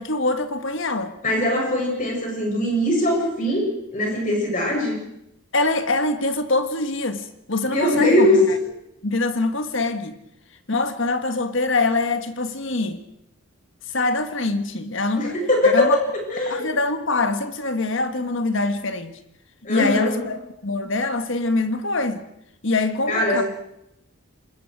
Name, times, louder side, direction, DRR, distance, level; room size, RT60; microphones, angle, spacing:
voice 1, 0.0-1.1 5.5-8.6 9.0-10.1 10.7-13.0 13.9-15.3 15.6-16.0 16.5-19.2 19.7-22.2 22.6-23.4, left 2 dB, 60° left, 9 dB, 1.6 m, -24 dB
voice 2, 1.2-5.0 7.6-8.4 15.2-16.6 19.6-20.2 23.1-23.4, left 1 dB, 35° left, -1 dB, 7.7 m, -21 dB
25.5 x 21.0 x 4.9 m, 0.80 s
head